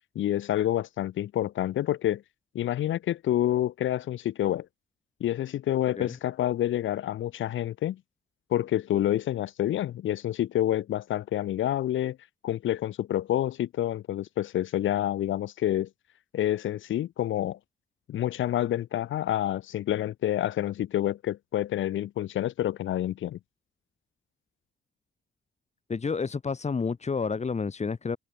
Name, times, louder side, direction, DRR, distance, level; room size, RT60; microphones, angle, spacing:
voice 1, 0.1-2.2 2.5-4.7 5.2-8.0 8.5-12.2 12.4-15.9 16.3-17.6 18.1-23.4, left 12 dB, 75° left, 4.6 m, -28 dB
voice 2, 25.9-28.2, left 5 dB, 35° left, 5.3 m, -30 dB
cardioid pair, 90°, 20 cm